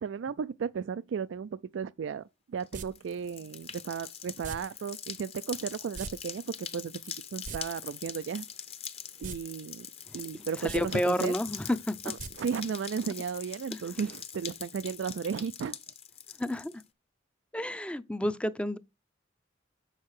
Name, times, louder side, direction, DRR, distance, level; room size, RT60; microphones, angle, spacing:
voice 1, 0.0-8.5 9.2-9.9 10.1-11.3 12.1-15.8, right 6 dB, 75° right, 0.3 m, -35 dB
sound 1, 2.6-16.8, left 8 dB, 35° left, 0.8 m, -43 dB
sound 2, 2.7-2.9 4.4-4.6 5.9-6.1 6.4-6.5 7.3-7.6 9.2-9.4 9.7-9.8 10.6-10.8 12.2-12.3 12.6-12.7, right 5 dB, 45° right, 0.7 m, -39 dB
voice 2, 10.6-12.1 16.4-16.8 17.5-18.8, left 1 dB, 5° left, 0.5 m, -30 dB
7.4 x 6.5 x 4.7 m
head